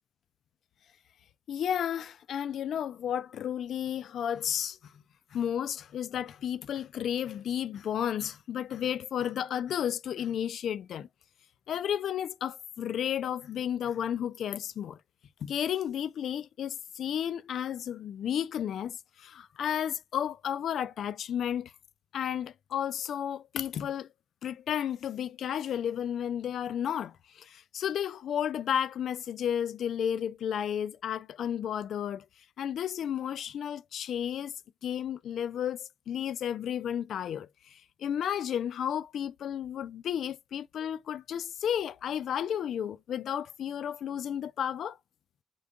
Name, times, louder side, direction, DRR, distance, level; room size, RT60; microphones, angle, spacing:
voice 1, 1.5-4.9 5.3-11.1 11.7-15.0 15.4-21.7 22.1-24.1 24.4-32.3 32.6-34.6 34.8-45.0, left 9 dB, 65° left, 0.3 m, -32 dB
3.8 x 3.7 x 3.4 m
cardioid pair, 145°, 0 cm